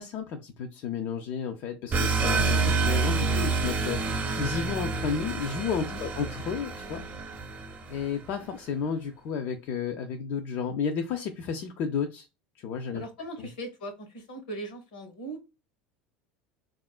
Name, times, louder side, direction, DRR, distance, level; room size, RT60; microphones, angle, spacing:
voice 1, 0.0-4.0 4.4-7.1 7.9-12.3 12.6-13.0 13.4-13.5, left 6 dB, 55° left, 4 dB, 0.4 m, -32 dB
sound 1, 1.9-8.2, right 4 dB, 35° right, 0.7 m, -28 dB
voice 2, 12.9-15.4, right 1 dB, 80° left, 6 dB, 0.9 m, -40 dB
3.4 x 2.4 x 2.3 m, 0.27 s
hypercardioid pair, 80°, 5 cm